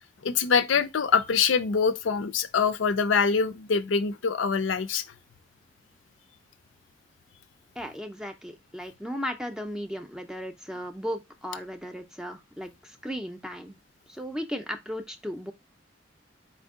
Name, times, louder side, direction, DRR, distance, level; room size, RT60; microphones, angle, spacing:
voice 1, 0.2-5.0, left 5 dB, 85° left, 0.5 m, -24 dB
voice 2, 7.8-13.8 14.1-15.5, equal, 5° right, 0.5 m, -36 dB
4.3 x 2.7 x 3.6 m
head